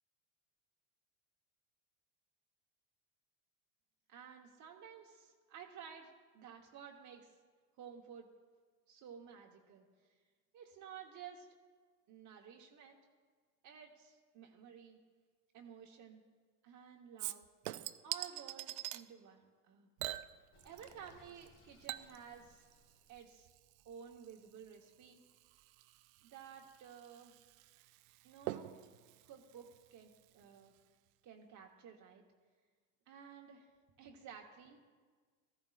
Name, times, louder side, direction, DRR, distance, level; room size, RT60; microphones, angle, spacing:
voice 1, 4.1-7.4 7.8-8.3 8.9-9.9 10.5-11.5 12.1-13.0 13.6-15.0 15.5-16.2 16.6-17.5 18.0-19.9 20.6-22.7 23.1-23.5 23.8-25.2 26.2-27.3 28.2-28.7 29.2-30.7 31.2-32.2 33.1-33.7 34.0-34.8, right 7 dB, 40° right, 1 dB, 1.2 m, -54 dB
Chink clink / Liquid, 17.2-19.0 20.0-21.1 21.4-30.4 30.8-30.9, right 16 dB, 65° right, 0.6 m, -47 dB
Sink (filling or washing), 20.5-23.3, left 2 dB, 35° left, 2.0 m, -66 dB
15.0 x 14.0 x 2.5 m, 1.5 s
supercardioid pair, 105°, 43 cm